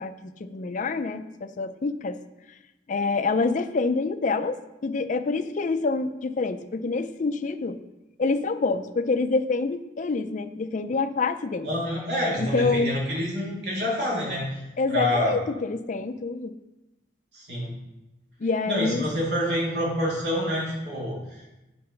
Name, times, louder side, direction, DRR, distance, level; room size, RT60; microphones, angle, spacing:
voice 1, 0.0-2.2 2.9-7.8 8.2-11.7 12.4-12.9 14.8-16.5 18.4-19.1, left 3 dB, 45° left, 10 dB, 0.4 m, -27 dB
voice 2, 11.6-14.6 14.9-15.3 17.3-17.7 18.7-21.5, equal, 70° right, -4 dB, 2.3 m, -27 dB
8.5 x 4.2 x 5.8 m, 0.99 s
head